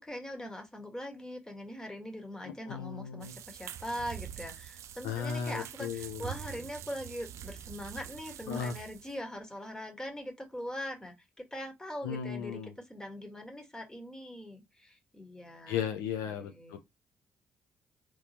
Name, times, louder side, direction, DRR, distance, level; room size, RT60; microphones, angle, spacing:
voice 1, 0.0-15.8 16.3-16.8, equal, 10° left, 1.4 m, -42 dB
voice 2, 2.4-3.4 5.0-6.3 8.5-8.7 12.0-12.7 15.7-16.8, left 7 dB, 85° left, 0.5 m, -36 dB
sound 1, 3.2-9.2, right 10 dB, 65° right, 0.3 m, -45 dB
3.3 x 3.0 x 2.8 m
hypercardioid pair, 50°, 5 cm